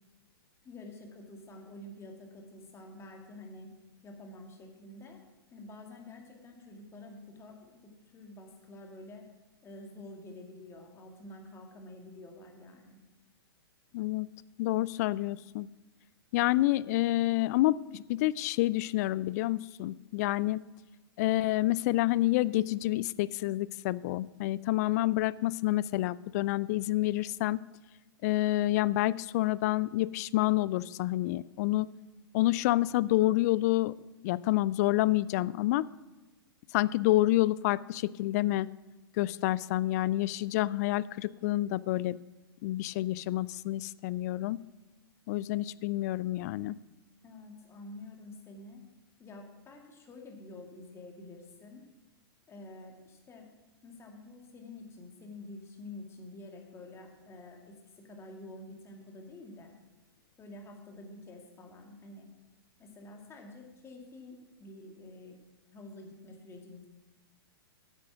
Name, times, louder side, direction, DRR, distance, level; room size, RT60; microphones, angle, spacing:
voice 1, 0.6-3.7 4.0-5.2 5.5-9.2 9.6-13.0 47.2-48.8 49.2-51.9 52.5-53.5 53.8-57.8 58.0-59.7 60.4-62.3 62.8-65.4 65.7-66.9, left 2 dB, 20° left, 2 dB, 2.1 m, -48 dB
voice 2, 13.9-14.3 14.6-15.7 16.3-20.6 21.2-27.6 28.2-31.9 32.3-34.0 34.2-35.9 36.7-38.7 39.2-42.2 42.6-44.6 45.3-46.8, left 16 dB, 40° left, 21 dB, 0.3 m, -28 dB
9.7 x 8.3 x 6.0 m, 1.1 s
figure-of-eight pair, 110°, 13 cm